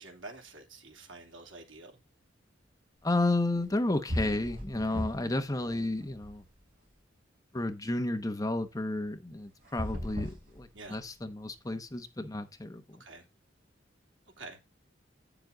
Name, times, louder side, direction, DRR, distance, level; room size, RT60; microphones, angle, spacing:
voice 1, 0.0-1.9 10.7-11.0 13.0-13.2 14.4-14.7, right 3 dB, 85° right, 3.1 m, -47 dB
voice 2, 3.0-6.4 7.5-13.0, left 2 dB, 20° left, 0.9 m, -32 dB
sound 1, 3.7-3.8 4.1-5.4 5.7-6.8 9.6-11.2, equal, 50° right, 4.2 m, -37 dB
9.3 x 7.1 x 3.9 m
head